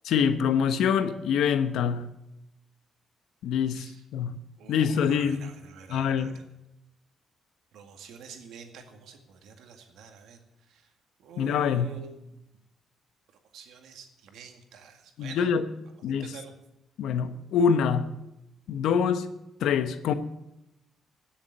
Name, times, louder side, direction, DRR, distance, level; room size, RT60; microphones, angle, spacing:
voice 1, 0.0-2.1 3.4-4.3 4.7-5.5 5.9-6.4 11.4-11.9 15.2-15.7 16.0-16.3 17.0-18.1 18.7-19.3 19.6-20.1, left 7 dB, 85° left, 1.0 m, -25 dB
voice 2, 4.6-6.4 7.7-10.4 10.7-10.8 11.2-12.3 13.5-15.5 16.1-16.5, right 6 dB, 85° right, 2.0 m, -47 dB
16.5 x 7.3 x 8.2 m
cardioid pair, 90°, 0 cm